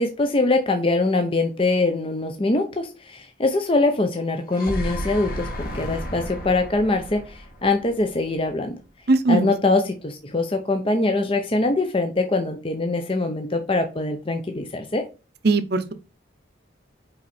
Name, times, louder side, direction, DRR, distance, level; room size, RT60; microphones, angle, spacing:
voice 1, 0.0-8.8 9.3-15.1, left 2 dB, 25° left, 0.6 m, -23 dB
sound 1, 4.3-8.5, equal, 50° left, 1.5 m, -33 dB
voice 2, 9.1-9.5 15.4-15.9, right 3 dB, 55° right, 0.7 m, -19 dB
5.6 x 4.6 x 4.2 m
head